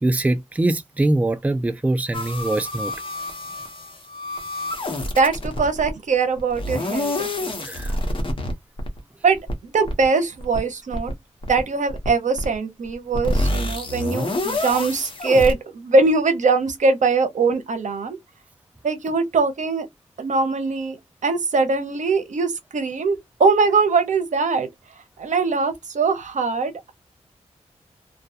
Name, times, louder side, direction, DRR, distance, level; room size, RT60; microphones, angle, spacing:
voice 1, 0.0-2.9 7.6-7.9, right 2 dB, 10° right, 0.3 m, -22 dB
sound 1, 2.1-5.9 6.4-8.5 8.8-9.0 9.3-9.6 9.9-10.1 10.4-10.6 10.9-11.1 11.4-11.6 11.9-12.1 12.4-12.6 12.9-15.5, left 1 dB, 45° left, 0.8 m, -27 dB
voice 2, 5.2-7.7 9.2-11.1 11.5-18.2 18.8-19.9 20.2-21.0 21.2-24.7 25.2-26.9, right 4 dB, 85° right, 0.7 m, -21 dB
2.2 x 2.2 x 2.7 m
wide cardioid pair, 105°, 12 cm